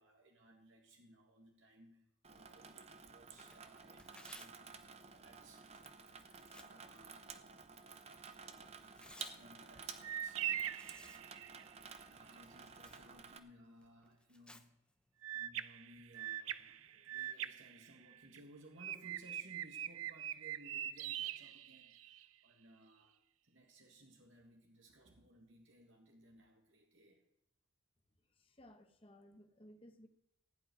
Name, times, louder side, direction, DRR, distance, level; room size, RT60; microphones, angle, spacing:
voice 1, 0.0-5.7 6.0-7.5 9.2-11.0 12.0-14.8 15.3-27.2, right 1 dB, 65° right, 1 dB, 1.9 m, -62 dB
Water tap faucet / Sink (filling or washing), 2.2-13.4, right 5 dB, 30° right, 0.8 m, -53 dB
Tearing, 3.3-17.1, left 2 dB, 5° left, 0.7 m, -65 dB
sound 1, 10.0-11.7 15.2-18.4 18.8-22.2, right 11 dB, 85° right, 0.6 m, -43 dB
voice 2, 28.3-30.1, equal, 25° left, 6 dB, 1.2 m, -60 dB
16.0 x 5.7 x 9.5 m, 0.77 s
head